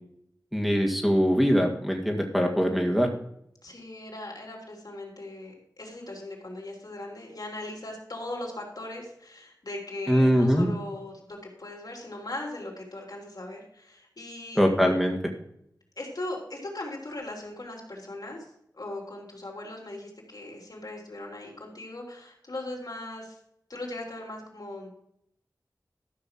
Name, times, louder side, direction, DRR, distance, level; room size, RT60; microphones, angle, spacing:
voice 1, 0.5-3.1 10.1-10.7 14.6-15.2, equal, ahead, 1 dB, 2.0 m, -22 dB
voice 2, 3.6-14.6 16.0-18.5 18.8-23.4 23.7-25.0, left 2 dB, 65° left, -1 dB, 3.7 m, -39 dB
13.5 x 5.9 x 5.9 m, 0.74 s
wide cardioid pair, 50°, 7 cm